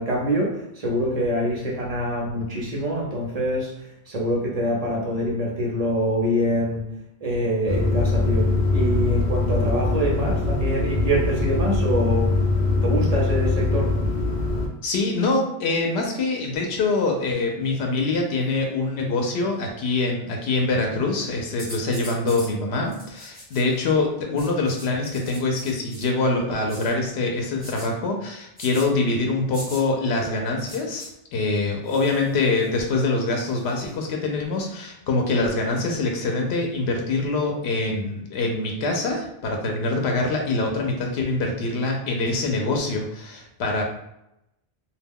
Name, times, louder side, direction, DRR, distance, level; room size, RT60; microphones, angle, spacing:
voice 1, 0.0-6.9 7.2-12.4 12.8-13.9, equal, 45° right, -3 dB, 0.7 m, -25 dB
sound 1, 7.7-14.7, left 2 dB, 55° left, 0.6 m, -22 dB
voice 2, 14.8-43.8, left 3 dB, 85° left, 1 dB, 0.8 m, -24 dB
sound 2, 21.6-22.5 22.9-23.8 24.4-26.1 26.7-26.9 27.6-27.9 28.6-28.9 29.5-29.8 30.6-31.1 31.9-32.8 33.4-33.9, equal, 10° left, 0.9 m, -41 dB
2.3 x 2.1 x 3.5 m, 0.84 s
omnidirectional pair, 1.1 m